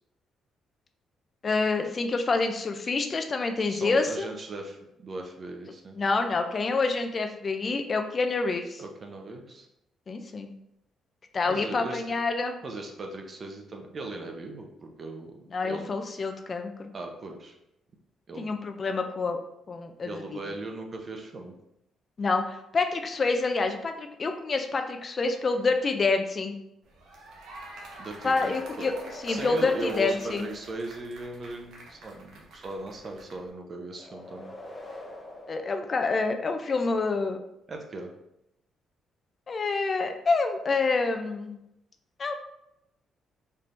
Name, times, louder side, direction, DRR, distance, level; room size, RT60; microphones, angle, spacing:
voice 1, 1.4-4.3 5.9-8.8 10.1-10.5 11.3-12.6 15.5-16.9 18.4-19.4 19.7-20.4 22.2-26.6 28.2-28.9 29.2-30.5 35.5-37.4 39.5-41.6 42.2-42.3, left 3 dB, 40° left, 6 dB, 0.4 m, -27 dB
voice 2, 3.7-6.0 8.8-9.7 11.4-12.0 12.6-15.3 15.6-15.9 16.9-17.5 18.3-18.5 20.0-21.5 28.0-28.9 29.3-34.5 37.7-38.1, right 2 dB, 40° right, 3 dB, 0.7 m, -38 dB
sound 1, 26.8-33.5, right 2 dB, 80° right, 0.9 m, -47 dB
sound 2, 28.5-31.3 33.9-36.6, left 1 dB, 20° left, 1.0 m, -45 dB
4.4 x 3.3 x 2.6 m, 0.85 s
cardioid pair, 90°, 0 cm